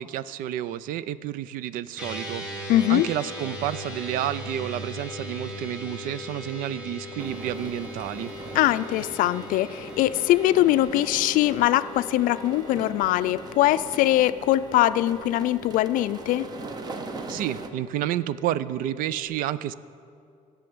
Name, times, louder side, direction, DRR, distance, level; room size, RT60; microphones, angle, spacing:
voice 1, 0.0-2.4 2.9-8.3 17.3-19.7, right 12 dB, 85° right, 17 dB, 0.5 m, -30 dB
sound 1, 2.0-19.2, left 1 dB, 5° right, 1.9 m, -40 dB
voice 2, 2.7-3.1 8.5-16.5, left 14 dB, 75° left, 14 dB, 0.4 m, -22 dB
sound 2, 7.2-17.7, right 3 dB, 30° right, 0.7 m, -40 dB
13.5 x 6.9 x 9.4 m, 2.4 s
cardioid pair, 175°, 14 cm